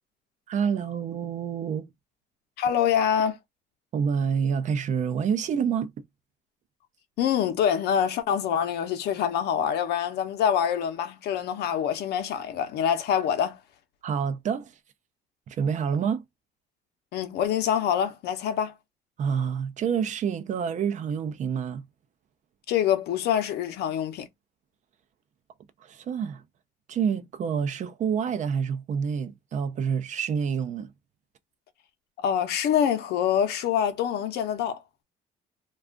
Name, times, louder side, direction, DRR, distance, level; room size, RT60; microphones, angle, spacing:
voice 1, 0.5-1.9 3.9-5.9 14.0-14.7 15.5-16.2 19.2-21.9 25.8-26.4 26.9-30.9, right 7 dB, 45° right, 0.5 m, -27 dB
voice 2, 2.6-3.4 7.2-13.6 17.1-18.7 22.7-24.3 32.2-34.8, left 9 dB, 75° left, 0.7 m, -25 dB
2.4 x 2.3 x 3.5 m
cardioid pair, 110°, 17 cm